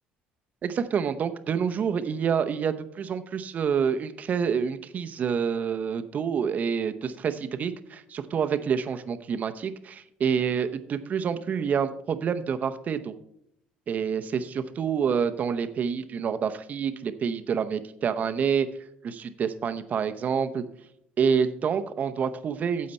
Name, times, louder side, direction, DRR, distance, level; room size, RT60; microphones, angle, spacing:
voice 1, 0.6-13.1 13.9-18.7 19.0-20.6 21.2-22.9, right 7 dB, 45° right, 10 dB, 0.8 m, -27 dB
9.7 x 7.5 x 4.3 m, 0.75 s
supercardioid pair, 85°, 4 cm